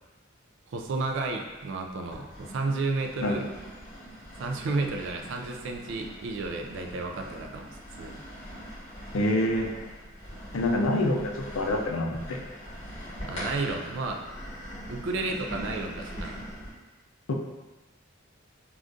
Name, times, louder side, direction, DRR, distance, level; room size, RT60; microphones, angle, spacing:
voice 1, 0.7-3.5 4.4-8.2 13.2-14.3 14.9-16.4, right 3 dB, 60° right, 3 dB, 0.3 m, -32 dB
sound 1, 1.2-1.6 2.1-16.7, equal, 30° left, 1.2 m, -42 dB
voice 2, 9.1-9.7 10.5-12.4 17.3-17.4, left 1 dB, 70° left, 1 dB, 0.4 m, -26 dB
3.6 x 2.3 x 2.5 m, 1.2 s
head